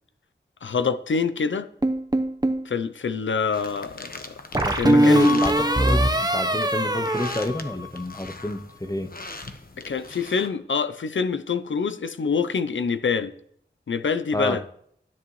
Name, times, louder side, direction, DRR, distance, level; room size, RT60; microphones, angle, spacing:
voice 1, 0.6-1.7 2.6-4.4 4.7-5.4 9.8-13.3 13.9-14.6, left 5 dB, 90° left, 0.6 m, -26 dB
sound 1, 1.8-2.7 4.5-8.2, right 1 dB, 20° right, 0.8 m, -22 dB
sound 2, 3.5-10.5, left 2 dB, 50° left, 1.0 m, -41 dB
voice 2, 4.6-9.1 14.3-14.6, left 2 dB, 20° left, 0.7 m, -28 dB
12.5 x 10.5 x 3.1 m
wide cardioid pair, 55°, 19 cm